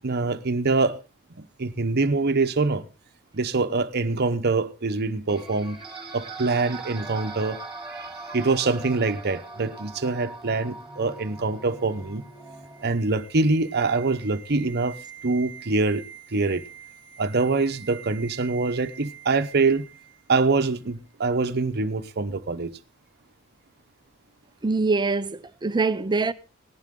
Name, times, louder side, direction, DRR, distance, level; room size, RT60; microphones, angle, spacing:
voice 1, 0.0-1.0 1.4-2.9 3.3-5.8 6.1-7.6 7.9-12.2 12.8-15.0 15.2-16.0 16.3-16.6 17.2-19.8 20.3-22.7, right 3 dB, 50° right, 0.9 m, -24 dB
sound 1, 5.3-12.9, right 3 dB, 5° right, 3.6 m, -40 dB
sound 2, 11.2-20.5 20.7-20.9, right 8 dB, 30° left, 3.6 m, -46 dB
voice 2, 24.6-26.3, right 3 dB, 20° right, 0.6 m, -24 dB
18.0 x 11.5 x 3.7 m
head